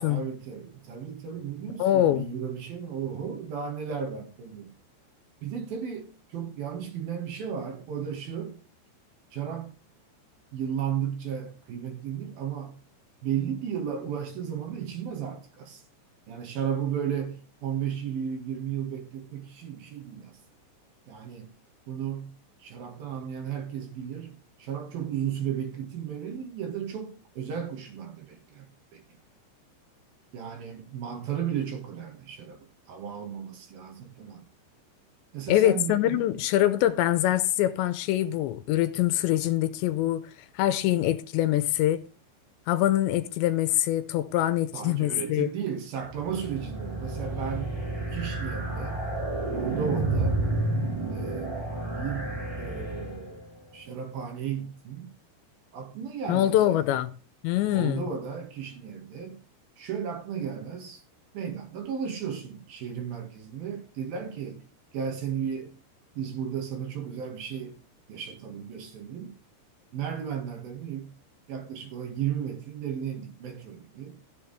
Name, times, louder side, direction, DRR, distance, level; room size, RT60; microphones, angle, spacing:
voice 1, 0.0-4.7 5.4-8.6 9.3-9.8 10.5-12.8 13.2-15.8 16.3-20.4 21.1-21.5 21.9-22.3 22.6-28.7 28.9-29.0 30.3-34.4 35.3-36.3 44.7-47.8 48.1-49.0 49.5-50.4 51.1-51.6 51.9-53.5 53.7-55.1 55.7-56.8 57.6-59.4 59.8-61.0 61.3-64.6 64.9-65.7 66.2-67.8 68.1-69.4 69.9-71.1 71.5-74.2, right 8 dB, 60° right, 3.3 m, -34 dB
voice 2, 1.8-2.3 35.5-40.3 40.6-42.0 42.7-45.5 56.3-57.1 57.4-58.0, left 13 dB, 80° left, 2.9 m, -24 dB
sound 1, 46.1-53.5, right 2 dB, 15° right, 1.3 m, -30 dB
14.5 x 7.6 x 3.5 m
omnidirectional pair, 5.2 m